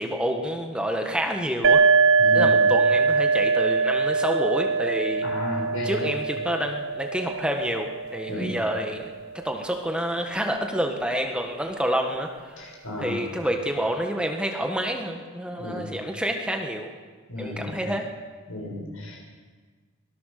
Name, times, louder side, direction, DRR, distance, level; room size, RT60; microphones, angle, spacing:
voice 1, 0.0-1.8 2.3-5.2 5.8-9.1 9.4-12.7 13.0-16.9 17.4-18.1, equal, 5° right, 3 dB, 1.5 m, -28 dB
sound 1, 1.6-9.1, right 4 dB, 60° right, 0.8 m, -23 dB
voice 2, 2.2-2.6 5.2-6.0 8.3-8.5 12.6-13.2 15.6-15.9 17.3-17.9 18.5-19.4, left 1 dB, 75° left, 0 dB, 6.7 m, -33 dB
24.0 x 18.0 x 6.7 m, 1.5 s
head